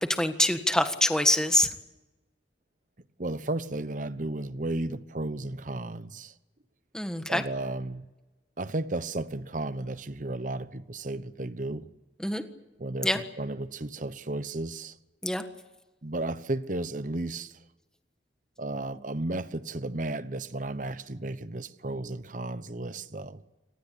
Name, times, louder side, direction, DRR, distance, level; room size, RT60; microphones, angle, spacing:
voice 1, 0.1-1.7 6.9-7.4 12.2-12.4 13.0-13.2 15.2-15.4, left 1 dB, 5° left, 1.6 m, -25 dB
voice 2, 3.2-6.3 7.3-8.0 8.6-11.8 12.8-14.9 16.0-17.5 18.6-23.4, right 2 dB, 45° right, 1.0 m, -34 dB
24.5 x 19.0 x 8.4 m
head